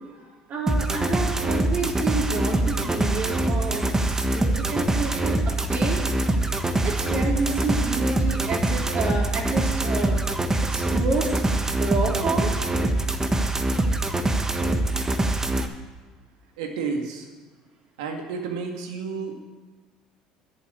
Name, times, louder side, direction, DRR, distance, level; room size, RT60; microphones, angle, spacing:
voice 1, 0.0-5.4 5.7-6.0 6.8-10.2 10.7-11.3 11.8-12.5, right 3 dB, 50° right, -1 dB, 3.9 m, -29 dB
sound 1, 0.7-15.7, right 2 dB, 15° right, 1.4 m, -24 dB
voice 2, 16.6-17.3 18.0-19.3, right 5 dB, 75° right, 3 dB, 2.1 m, -31 dB
11.0 x 8.2 x 8.6 m, 1.3 s
hypercardioid pair, 65°, 3 cm